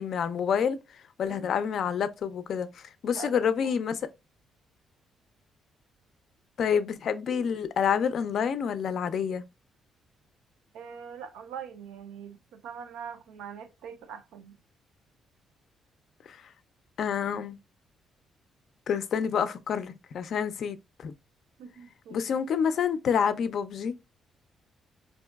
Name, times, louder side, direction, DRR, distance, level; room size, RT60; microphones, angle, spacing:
voice 1, 0.0-4.1 6.6-9.4 16.3-16.5 17.0-17.6 18.9-21.1 22.1-24.0, left 7 dB, 65° left, 0.4 m, -28 dB
voice 2, 3.1-3.9 10.7-14.6 21.6-22.4, right 7 dB, 90° right, 0.5 m, -43 dB
3.8 x 2.6 x 2.2 m
cardioid pair, 90°, 0 cm